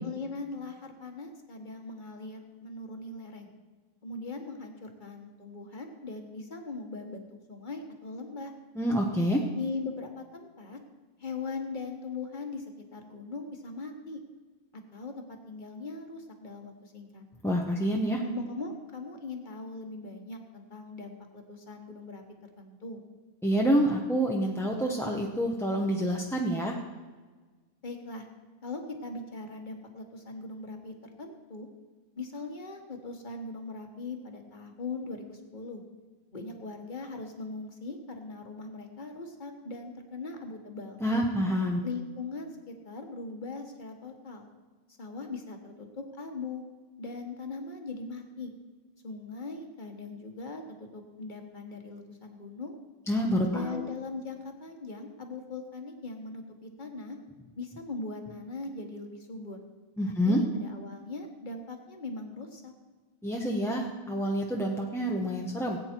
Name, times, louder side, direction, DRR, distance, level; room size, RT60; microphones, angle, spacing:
voice 1, 0.0-3.5 4.0-8.5 9.5-10.8 11.2-12.6 12.9-14.2 14.9-17.2 18.2-22.2 22.6-23.0 27.8-28.3 28.6-31.7 32.2-35.8 36.3-41.0 41.8-44.5 45.0-46.6 47.0-48.5 49.0-52.8 53.5-57.2 57.6-59.6 60.1-62.7, left 3 dB, 35° left, 3 dB, 1.5 m, -40 dB
voice 2, 8.8-9.4 17.4-18.2 23.4-26.7 41.0-41.8 53.1-53.9 60.0-60.4 63.2-65.8, equal, ahead, -1 dB, 0.7 m, -27 dB
18.5 x 8.7 x 4.5 m, 1.4 s
omnidirectional pair, 1.5 m